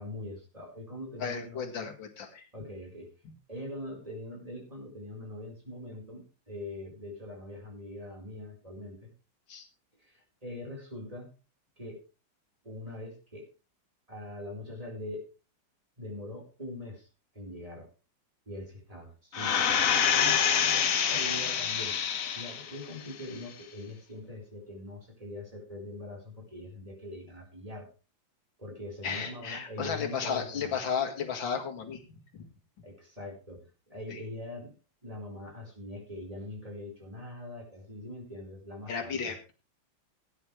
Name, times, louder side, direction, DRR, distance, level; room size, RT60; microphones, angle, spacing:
voice 1, 0.0-1.9 2.5-3.1 3.5-9.1 10.0-11.3 11.8-12.0 12.6-13.5 14.1-15.2 16.0-17.1 17.3-17.9 18.5-22.0 22.3-27.9 28.6-30.7 32.8-34.7 35.0-39.3, left 1 dB, 20° right, -1 dB, 4.5 m, -42 dB
voice 2, 1.2-2.5 9.5-9.7 29.0-32.0 32.3-32.5 34.1-34.2 38.9-39.5, left 6 dB, 90° left, 4 dB, 2.6 m, -34 dB
sound 1, 19.3-22.7 23.2-23.3, left 8 dB, 50° left, 1.2 m, -26 dB
18.0 x 9.8 x 3.3 m, 0.32 s
omnidirectional pair, 2.0 m